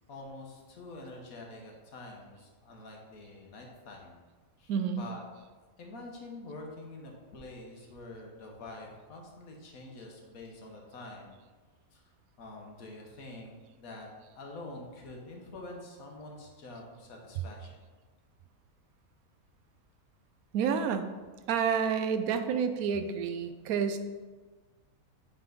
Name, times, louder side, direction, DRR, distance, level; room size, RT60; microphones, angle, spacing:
voice 1, 0.1-4.2 4.6-5.2 5.8-11.4 11.9-12.0 12.4-14.1 14.3-17.8, left 2 dB, 80° left, 0 dB, 1.6 m, -46 dB
voice 2, 4.7-5.0 20.5-21.1 21.5-24.0, right 7 dB, 90° right, 9 dB, 1.1 m, -29 dB
8.0 x 4.0 x 3.9 m, 1.4 s
omnidirectional pair, 1.5 m